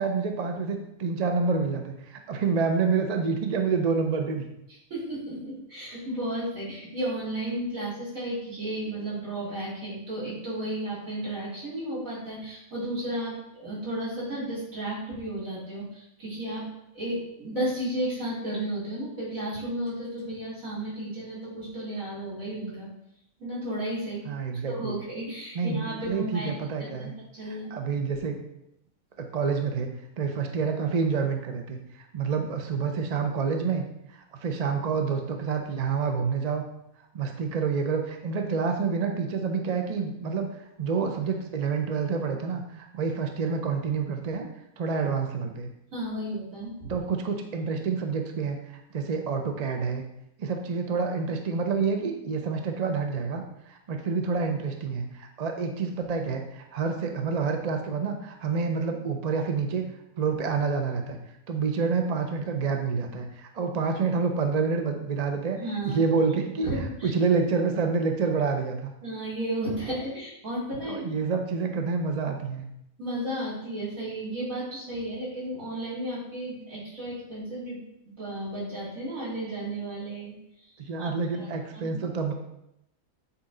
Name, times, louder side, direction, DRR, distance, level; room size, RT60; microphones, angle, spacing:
voice 1, 0.0-4.4 24.3-25.0 25.5-27.1 27.5-28.4 29.2-29.9 30.2-31.8 32.1-33.8 34.1-36.6 37.1-40.5 40.8-44.5 44.8-45.7 46.9-50.0 50.4-59.9 60.2-61.2 61.5-65.6 65.9-68.9 70.9-72.6 80.9-82.3, right 5 dB, 40° right, 4 dB, 0.6 m, -28 dB
voice 2, 4.9-16.7 16.9-22.9 23.4-24.3 24.7-26.5 26.8-27.1 27.4-27.7 45.9-46.9 65.5-66.0 66.6-67.1 69.0-71.0 73.0-77.8 78.2-80.3 81.0-81.1 81.4-81.9, right 1 dB, 65° right, -8 dB, 3.5 m, -33 dB
8.6 x 4.2 x 3.8 m, 0.80 s
omnidirectional pair, 1.5 m